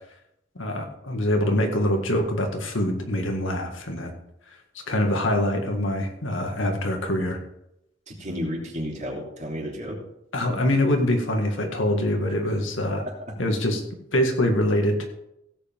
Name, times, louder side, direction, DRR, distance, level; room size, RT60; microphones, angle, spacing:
voice 1, 0.6-4.1 4.9-7.4 10.3-13.0 13.4-13.8 14.1-15.1, left 1 dB, 75° left, 3 dB, 1.9 m, -24 dB
voice 2, 8.1-10.0 13.0-13.1, equal, 40° right, -1 dB, 3.1 m, -32 dB
16.5 x 8.2 x 3.6 m, 0.80 s
head